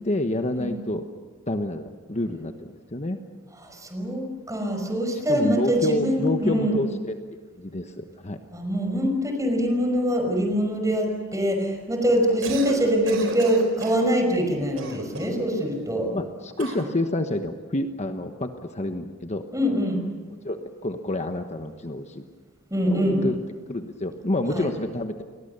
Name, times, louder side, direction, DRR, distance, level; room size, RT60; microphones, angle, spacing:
voice 1, 0.0-1.0 1.5-3.2 5.3-7.2 7.6-8.4 16.1-19.4 20.4-22.3 22.9-23.4 23.7-25.2, left 1 dB, 35° left, 6 dB, 1.2 m, -28 dB
voice 2, 3.6-6.8 8.5-16.1 19.5-20.0 22.7-23.2 24.5-24.7, equal, 15° right, 3 dB, 5.5 m, -24 dB
Cough, 12.3-12.8 13.1-14.0 14.8-15.4 16.6-16.9, right 2 dB, 80° right, 4.6 m, -33 dB
30.0 x 22.5 x 6.8 m, 1.4 s
head